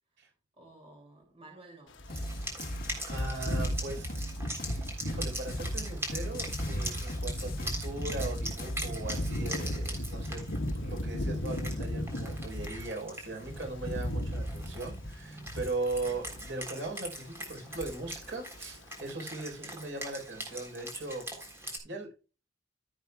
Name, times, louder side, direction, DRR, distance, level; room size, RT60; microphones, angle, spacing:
voice 1, 0.6-2.0 7.5-7.7 14.7-14.8 16.0-16.2 19.5-19.8, right 2 dB, 30° right, 2.6 m, -54 dB
sound 1, 1.9-12.9 13.2-16.6 16.9-17.2 17.5-18.3 18.6-18.8, equal, 75° left, 1.2 m, -36 dB
sound 2, 2.1-10.0, equal, 50° left, 1.7 m, -38 dB
Wind instrument woodwind instrument, 2.1-21.8, right 1 dB, 15° right, 3.6 m, -42 dB
voice 2, 3.1-4.1 4.7-10.4 10.8-22.1, right 2 dB, 70° right, 4.1 m, -39 dB
15.0 x 8.2 x 2.3 m
head